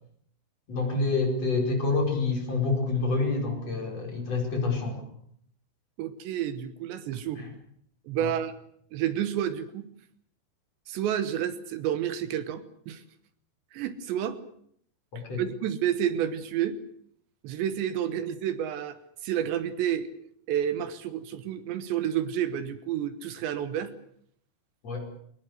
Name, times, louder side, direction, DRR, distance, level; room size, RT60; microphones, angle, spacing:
voice 1, 0.7-5.0 7.4-7.5 8.2-8.3 15.1-15.4 24.8-25.1, left 3 dB, 35° left, 2 dB, 5.7 m, -27 dB
voice 2, 6.0-7.4 8.1-8.5 8.9-9.9 10.9-13.0 13.7-14.4 15.4-16.8 17.4-19.0 19.2-20.1 20.5-23.9, right 10 dB, 75° right, 11 dB, 3.3 m, -30 dB
23.0 x 20.0 x 8.1 m, 0.66 s
omnidirectional pair, 5.3 m